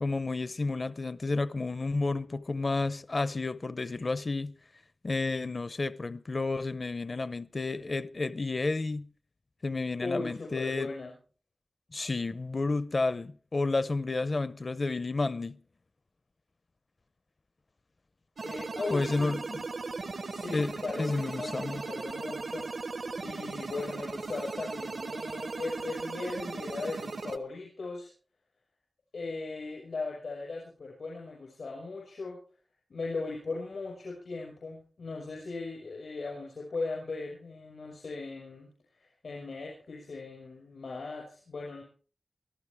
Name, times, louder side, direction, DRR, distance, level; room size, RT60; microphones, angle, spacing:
voice 1, 0.0-4.5 5.0-9.1 9.6-10.9 11.9-15.6 18.9-19.6 20.5-21.8, left 3 dB, 50° left, 0.6 m, -31 dB
voice 2, 10.0-11.1 18.4-19.4 20.3-28.1 29.1-32.4 32.9-41.8, left 3 dB, 90° left, 5.4 m, -38 dB
sound 1, 18.4-27.4, right 3 dB, 75° right, 1.1 m, -37 dB
23.0 x 13.5 x 3.5 m
wide cardioid pair, 80°, 0 cm